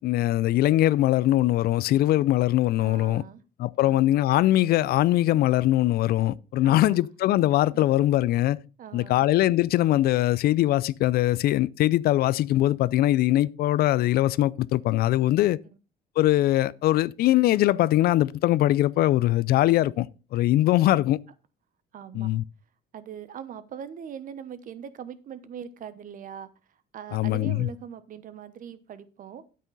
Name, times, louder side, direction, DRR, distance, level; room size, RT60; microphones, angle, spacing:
voice 1, 0.0-3.2 3.6-8.6 8.9-15.6 16.2-20.1 20.3-21.2 22.1-22.4 27.1-27.7, left 15 dB, 65° left, 0.4 m, -22 dB
voice 2, 2.8-3.4 3.8-4.1 6.6-7.0 7.7-7.8 8.8-9.3 20.9-21.1 21.9-22.3 22.9-26.5 26.9-29.4, right 8 dB, 55° right, 1.0 m, -41 dB
9.0 x 8.5 x 3.9 m
cardioid pair, 110°, 17 cm